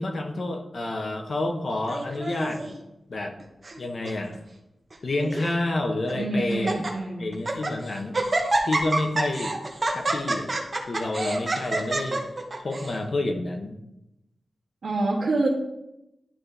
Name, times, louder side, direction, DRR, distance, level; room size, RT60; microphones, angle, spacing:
voice 1, 0.0-2.8 3.1-3.3 3.8-4.4 5.0-6.8 7.2-8.2 8.6-9.5 9.9-10.5 10.9-12.3 12.6-13.8, left 2 dB, 45° left, 4 dB, 1.0 m, -29 dB
Laughter, 1.9-2.7 3.4-3.8 4.0-4.1 4.9-5.5 6.1-6.2 6.5-6.9 7.3-7.7 8.1-12.9, right 2 dB, 30° right, 0.9 m, -27 dB
voice 2, 6.1-7.3 14.8-15.5, right 2 dB, 60° right, -7 dB, 1.5 m, -26 dB
11.5 x 4.2 x 3.3 m, 0.88 s
wide cardioid pair, 170°, 0 cm